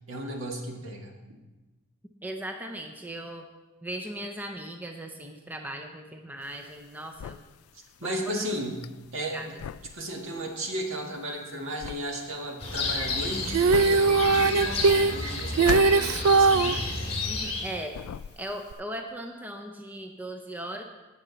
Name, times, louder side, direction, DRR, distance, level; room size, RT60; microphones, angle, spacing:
voice 1, 0.1-1.4 7.7-8.8 9.1-9.5 9.9-16.8, right 1 dB, 65° right, 1 dB, 1.8 m, -35 dB
voice 2, 2.2-3.4 3.8-7.4 8.0-8.5 9.3-9.5 17.2-18.0 18.4-20.8, right 1 dB, 10° right, 4 dB, 0.6 m, -38 dB
sound 1, 6.4-17.6 17.9-18.7, left 8 dB, 85° left, 0.3 m, -38 dB
sound 2, 12.6-17.7, left 3 dB, 30° left, 1.9 m, -31 dB
Female singing, 13.5-16.8 18.7-18.8, right 4 dB, 90° right, 0.4 m, -20 dB
18.0 x 6.8 x 4.0 m, 1.2 s
head